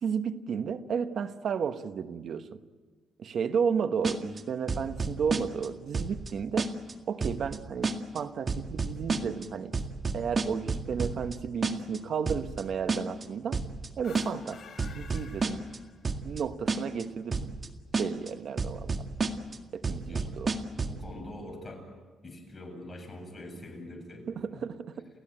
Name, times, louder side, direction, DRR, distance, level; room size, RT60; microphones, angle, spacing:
voice 1, 0.0-2.6 3.2-6.7 7.1-9.7 10.1-13.6 14.0-15.6 16.2-17.6 18.0-18.9 19.7-20.6 24.3-25.1, right 6 dB, 60° right, 9 dB, 1.3 m, -33 dB
sound 1, 4.0-4.4 4.7-5.7 5.9-6.3 6.6-6.9 7.2-7.6 7.8-8.2 8.5-9.5 9.7-11.4 11.6-12.0 12.3-12.6 12.9-13.2 13.5-13.9 14.1-14.5 14.8-15.8 16.0-16.4 16.7-17.0 17.3-17.7 17.9-18.3 18.6-19.6 19.8-21.0, right 4 dB, 35° right, 1.9 m, -30 dB
sound 2, 13.9-16.3, left 5 dB, 50° left, 3.9 m, -50 dB
voice 2, 20.9-21.9 22.2-24.7, left 1 dB, 25° left, 3 dB, 7.8 m, -44 dB
29.5 x 16.5 x 9.0 m, 1.4 s
cardioid pair, 105°, 0 cm